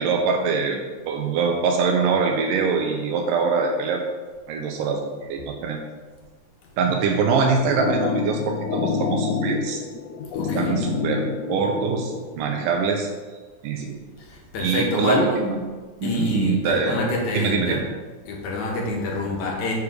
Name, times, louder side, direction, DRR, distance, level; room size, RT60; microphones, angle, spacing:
voice 1, 0.0-4.0 4.5-5.8 6.8-9.8 10.5-13.1 13.6-14.0 14.6-15.6 16.0-17.0 17.3-17.8, right 5 dB, 85° right, 1 dB, 2.3 m, -23 dB
sound 1, 7.4-12.3, left 5 dB, 90° left, 2.3 m, -27 dB
voice 2, 10.3-10.8 14.2-15.3 16.0-17.8 18.3-19.7, left 2 dB, 70° left, -1 dB, 2.6 m, -27 dB
6.8 x 5.0 x 4.8 m, 1.4 s
omnidirectional pair, 3.7 m